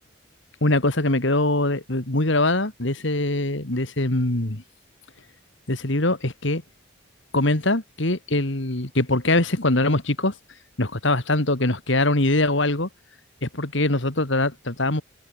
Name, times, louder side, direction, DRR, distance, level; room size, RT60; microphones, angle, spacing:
voice 1, 0.6-4.6 5.7-6.6 7.3-10.3 10.8-12.9 13.4-15.0, left 2 dB, 60° left, 2.5 m, -22 dB
head